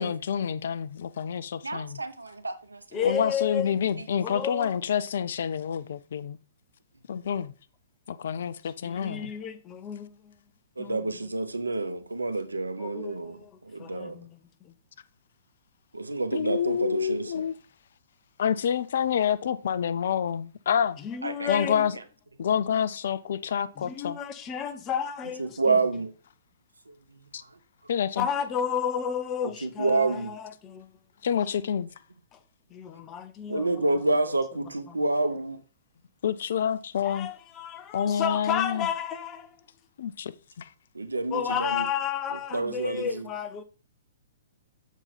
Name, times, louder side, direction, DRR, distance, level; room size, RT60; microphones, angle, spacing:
voice 1, 0.0-2.0 3.0-6.4 7.1-7.5 8.1-9.3 16.3-17.5 18.4-21.0 21.5-21.9 22.4-24.2 27.3-27.4 27.9-28.3 31.2-31.9 36.2-37.3 37.9-38.9 40.0-40.3 40.6-40.7, left 8 dB, 55° left, 0.4 m, -28 dB
voice 2, 1.6-2.8 4.3-4.4 10.8-14.2 15.9-17.4 21.2-21.5 25.4-26.1 26.9-27.0 29.6-30.3 33.5-35.6 40.9-41.9 42.5-43.2, right 3 dB, 80° right, 0.7 m, -28 dB
voice 3, 2.9-3.7 4.2-4.8 8.6-10.3 10.8-11.1 12.8-14.7 21.0-21.9 23.8-25.8 28.2-30.9 32.7-33.7 34.9-35.0 37.0-39.5 41.3-43.6, left 8 dB, 25° left, 0.7 m, -32 dB
7.1 x 4.1 x 4.2 m
figure-of-eight pair, 115°, 0 cm